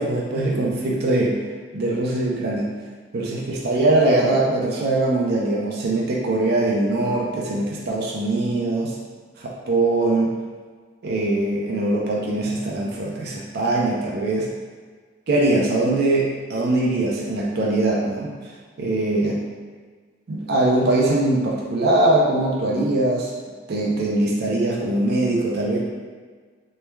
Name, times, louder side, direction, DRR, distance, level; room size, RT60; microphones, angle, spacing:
voice 1, 0.0-1.5 1.7-2.7 3.1-8.9 9.4-10.4 11.0-14.5 15.3-18.3 18.8-19.4 20.3-23.3 23.7-25.8, right 2 dB, 60° right, -3 dB, 0.5 m, -22 dB
3.0 x 2.2 x 2.2 m, 1.5 s
head